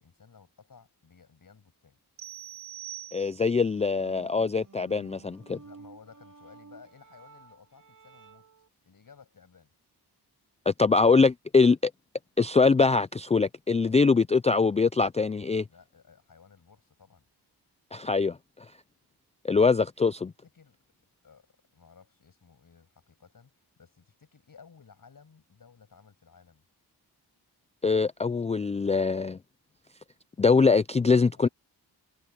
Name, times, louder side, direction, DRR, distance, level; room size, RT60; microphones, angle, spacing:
voice 1, 0.0-2.0 5.6-8.5 8.8-9.7 15.6-17.2 20.5-20.8 21.2-26.6 31.1-31.5, left 6 dB, 55° left, 7.2 m, -56 dB
sound 1, 2.2-3.7, right 13 dB, 80° right, 1.1 m, -43 dB
voice 2, 3.1-5.6 10.7-11.9 12.4-15.6 17.9-18.4 19.4-20.3 27.8-29.4 30.4-31.5, left 4 dB, 20° left, 0.3 m, -23 dB
sound 2, 3.6-8.7, right 5 dB, 50° right, 2.4 m, -53 dB
wide cardioid pair, 105°, 40 cm